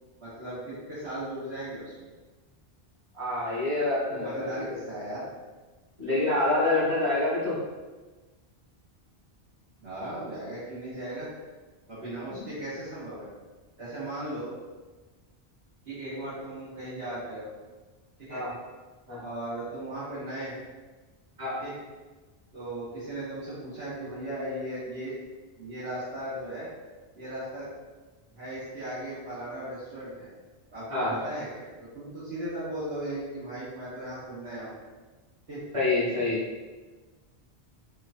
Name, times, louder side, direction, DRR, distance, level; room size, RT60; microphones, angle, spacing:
voice 1, 0.2-2.1 4.1-5.2 9.8-11.3 11.9-13.3 13.8-14.5 15.8-17.4 18.2-18.4 19.2-20.5 21.6-21.7 22.5-25.1 25.6-26.7 27.1-27.7 28.3-30.3 30.7-31.7 31.9-34.8 35.5-35.6, right 1 dB, 70° right, -13 dB, 1.4 m, -37 dB
voice 2, 3.1-4.8 6.0-7.5 18.3-18.5 19.1-19.2 21.4-21.6 30.9-31.1 35.7-36.4, left 2 dB, 30° right, -9 dB, 1.4 m, -27 dB
4.5 x 2.5 x 2.4 m, 1.3 s
omnidirectional pair, 1.1 m